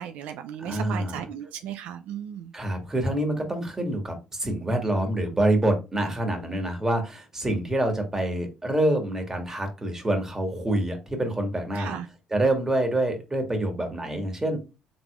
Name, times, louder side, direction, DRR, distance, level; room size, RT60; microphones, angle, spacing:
voice 1, 0.0-2.5 11.7-12.1, right 9 dB, 70° right, 0.4 m, -35 dB
voice 2, 0.6-1.2 2.5-12.0 12.3-14.6, right 1 dB, 20° right, 1.6 m, -26 dB
4.9 x 3.5 x 2.4 m
hypercardioid pair, 65°, 3 cm